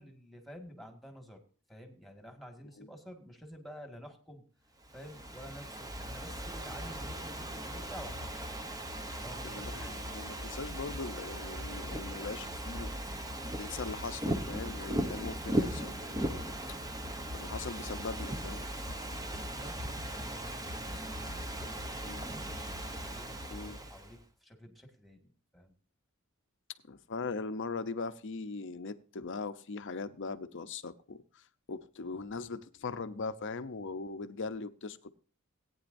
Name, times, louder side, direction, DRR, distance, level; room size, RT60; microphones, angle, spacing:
voice 1, 0.0-1.4 1.7-4.4 4.9-8.6 9.2-10.0 19.6-22.7 23.1-25.7, equal, ahead, 4 dB, 1.8 m, -50 dB
Ocean / Fireworks, 4.9-24.1, right 1 dB, 15° right, 0.9 m, -38 dB
voice 2, 9.4-13.0 13.6-16.4 17.3-18.7 22.0-22.2 23.5-23.8 26.9-31.4 31.7-35.1, left 4 dB, 60° left, 12 dB, 0.7 m, -40 dB
18.0 x 9.4 x 2.6 m, 0.40 s
head